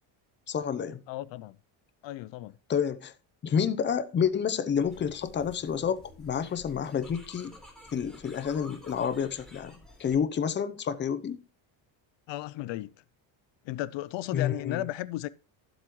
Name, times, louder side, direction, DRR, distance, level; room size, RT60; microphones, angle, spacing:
voice 1, 0.5-1.0 2.7-3.1 3.4-7.5 7.9-11.4 14.3-14.8, left 7 dB, 25° left, 0.6 m, -29 dB
voice 2, 1.1-1.6 2.0-2.6 12.3-12.9 13.7-15.3, left 15 dB, 65° left, 0.5 m, -35 dB
sound 1, 4.8-10.2, left 1 dB, ahead, 3.7 m, -51 dB
12.0 x 7.9 x 3.0 m
cardioid pair, 130°, 47 cm